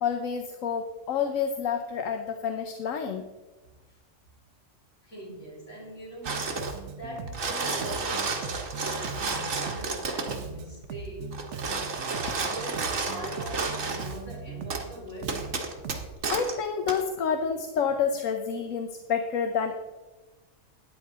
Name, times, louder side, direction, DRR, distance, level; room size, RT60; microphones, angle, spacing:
voice 1, 0.0-3.2 12.3-12.4 16.3-19.7, left 7 dB, 90° left, 6 dB, 1.2 m, -29 dB
voice 2, 5.0-6.6 6.9-11.6 12.4-15.5 16.2-16.3, right 1 dB, 70° left, -4 dB, 4.7 m, -42 dB
sound 1, 6.2-6.8 7.2-10.4 11.3-14.1 14.7-14.8 15.3-16.5 16.9-17.0, right 4 dB, 85° right, 1.8 m, -31 dB
Bass guitar, 6.3-16.1, right 5 dB, 70° right, 1.1 m, -40 dB
13.5 x 10.0 x 3.6 m, 1.2 s
omnidirectional pair, 1.3 m